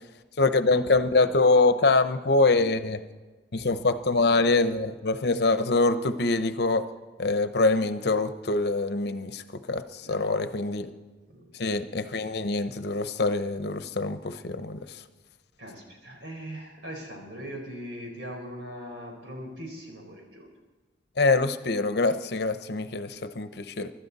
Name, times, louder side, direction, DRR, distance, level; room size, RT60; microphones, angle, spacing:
voice 1, 0.4-3.1 3.5-6.8 7.2-10.9 11.6-15.0 21.2-23.9, left 3 dB, 65° left, 11 dB, 0.8 m, -24 dB
voice 2, 10.0-10.5 11.3-11.5 15.6-20.5, equal, 90° right, 1 dB, 4.3 m, -40 dB
24.0 x 12.5 x 4.1 m, 1.3 s
head